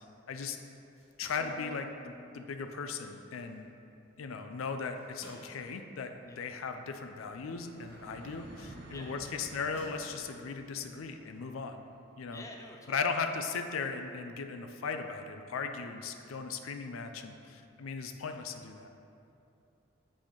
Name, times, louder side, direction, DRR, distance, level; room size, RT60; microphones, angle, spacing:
sound 1, 0.9-8.8 9.5-10.5, left 1 dB, 35° left, 1.6 m, -59 dB
voice 1, 1.2-3.7 4.2-11.8 12.2-12.4 12.9-18.9, left 5 dB, 90° left, 6 dB, 0.5 m, -37 dB
sound 2, 1.4-3.4, left 1 dB, 80° right, 1.0 m, -51 dB
sound 3, 4.0-15.0, right 1 dB, 50° right, 0.7 m, -55 dB
voice 2, 12.3-13.1, left 2 dB, 15° left, 2 dB, 0.4 m, -48 dB
8.7 x 4.2 x 3.8 m, 2.7 s
head